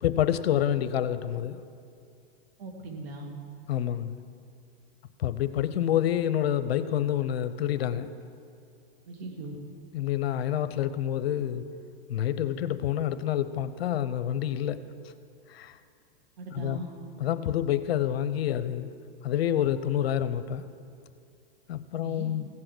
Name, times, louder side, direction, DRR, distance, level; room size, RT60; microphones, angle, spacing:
voice 1, 0.0-1.6 3.7-4.2 5.2-8.1 9.9-11.6 12.1-14.8 15.5-15.8 16.5-16.8 17.2-18.9 19.2-20.7 21.7-22.5, left 10 dB, 75° left, 12 dB, 0.7 m, -28 dB
voice 2, 2.6-3.4 9.1-9.6 16.4-16.9 22.0-22.3, right 2 dB, 75° right, 3 dB, 2.3 m, -39 dB
16.0 x 7.7 x 6.0 m, 2.4 s
hypercardioid pair, 120°, 31 cm